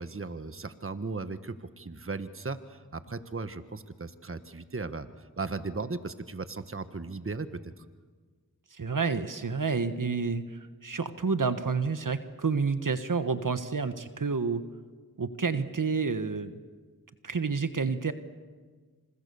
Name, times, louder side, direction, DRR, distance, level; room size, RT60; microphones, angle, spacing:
voice 1, 0.0-7.8, right 3 dB, 35° right, 11 dB, 1.4 m, -37 dB
voice 2, 8.7-14.6 15.2-16.5 17.2-18.1, right 5 dB, 60° right, 10 dB, 1.4 m, -29 dB
28.0 x 27.0 x 7.1 m, 1.5 s
cardioid pair, 40°, 37 cm